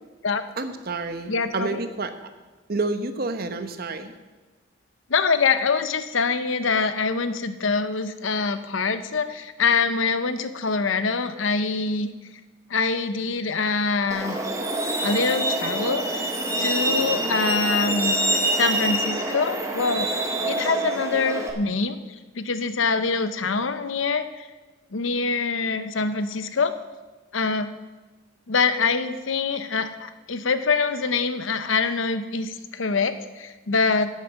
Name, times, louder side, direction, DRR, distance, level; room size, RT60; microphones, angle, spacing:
voice 1, 0.6-2.1 2.7-4.1, right 3 dB, 50° right, 8 dB, 1.0 m, -29 dB
voice 2, 1.3-1.8 5.1-12.1 12.7-14.4 15.0-18.1 18.5-20.1 20.4-22.0 22.3-24.5 24.9-26.7 27.3-27.7 28.5-34.1, left 4 dB, 80° left, 11 dB, 0.8 m, -24 dB
Truck, 14.1-21.5, right 1 dB, 15° right, 1.3 m, -25 dB
10.5 x 8.3 x 7.3 m, 1.2 s
head